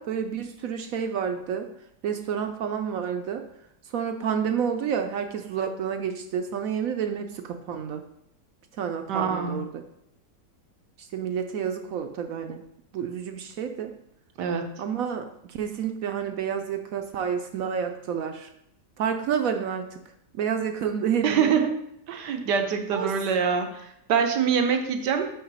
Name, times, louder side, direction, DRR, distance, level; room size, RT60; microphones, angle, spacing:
voice 1, 0.0-1.7 2.0-3.4 3.9-8.0 8.8-9.8 11.1-12.6 12.9-13.9 14.8-18.5 19.0-20.0 20.3-21.5 22.9-23.1, right 7 dB, 70° right, 6 dB, 0.9 m, -29 dB
voice 2, 9.1-9.6 14.4-14.6 21.2-21.8 22.1-25.3, right 6 dB, 90° right, 6 dB, 1.5 m, -24 dB
5.9 x 5.7 x 5.4 m, 0.79 s
omnidirectional pair, 1.8 m